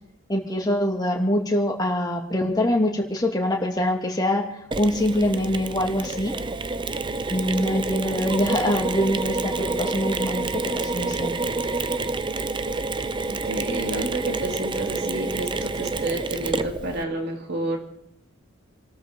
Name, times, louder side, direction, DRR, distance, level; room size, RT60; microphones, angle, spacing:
voice 1, 0.3-4.4 4.8-6.4 7.3-11.3, left 1 dB, 20° left, 0 dB, 2.3 m, -24 dB
Mechanisms, 4.7-17.0, right 3 dB, 25° right, 0.5 m, -28 dB
voice 2, 13.3-17.8, right 1 dB, 50° right, 2 dB, 2.6 m, -30 dB
27.5 x 13.0 x 3.8 m, 0.74 s
head